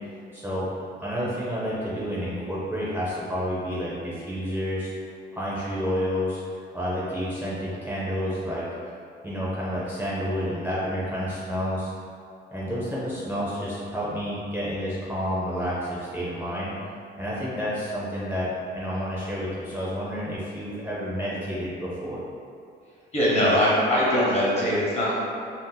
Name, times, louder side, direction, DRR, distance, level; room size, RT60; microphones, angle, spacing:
voice 1, 0.3-0.7 1.0-4.9 5.3-6.4 6.7-8.7 9.2-11.9 12.5-16.7 17.2-22.2, equal, 10° right, -8 dB, 0.6 m, -29 dB
voice 2, 23.1-25.2, equal, 35° left, -6 dB, 1.0 m, -21 dB
2.7 x 2.0 x 3.7 m, 2.3 s
cardioid pair, 90°, 20 cm